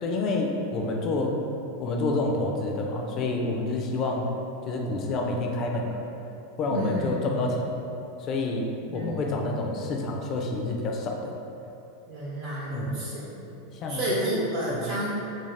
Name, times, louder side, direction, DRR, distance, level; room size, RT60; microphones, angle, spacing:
voice 1, 0.0-1.4 1.8-4.3 4.7-6.0 6.6-7.8 8.2-8.7 8.9-11.3 12.7-12.9 13.7-14.0 14.7-14.8, left 2 dB, 35° left, 1 dB, 0.3 m, -28 dB
voice 2, 6.7-7.4 8.8-9.5 12.1-13.2 13.9-15.1, right 1 dB, 55° right, -8 dB, 0.5 m, -30 dB
2.5 x 2.3 x 3.2 m, 2.8 s
supercardioid pair, 150°, 0 cm